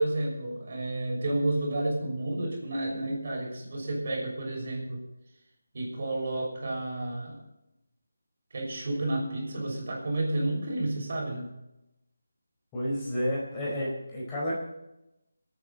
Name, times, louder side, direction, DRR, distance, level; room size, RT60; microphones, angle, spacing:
voice 1, 0.0-5.0 5.7-7.4 8.5-11.5, right 1 dB, 50° right, -1 dB, 6.2 m, -31 dB
voice 2, 12.7-14.6, equal, 15° left, -6 dB, 4.6 m, -30 dB
26.5 x 9.2 x 4.2 m, 0.89 s
figure-of-eight pair, 165°, 0 cm